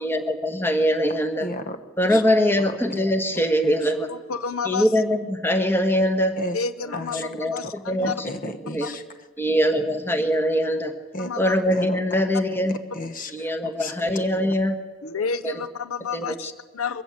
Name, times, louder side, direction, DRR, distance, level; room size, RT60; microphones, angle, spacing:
voice 1, 0.0-1.5 2.0-4.1 4.6-6.3 7.1-7.6 7.9-8.1 8.7-8.9 9.4-10.9 11.4-12.8 13.3-14.7 15.2-15.5 16.1-16.5, equal, 10° left, 7 dB, 1.5 m, -22 dB
voice 2, 1.4-1.8 2.1-2.2 2.6-2.8 3.6-3.7 6.4-6.6 6.9-7.2 7.6-7.7 8.0-9.0 11.1-11.3 11.7-12.0 12.9-13.3 13.6-13.9, left 1 dB, 40° left, 10 dB, 1.1 m, -33 dB
voice 3, 4.1-4.9 6.5-8.2 8.8-9.0 11.2-11.5 15.0-17.0, left 5 dB, 80° left, 14 dB, 0.7 m, -30 dB
22.5 x 14.5 x 8.6 m, 1.4 s
head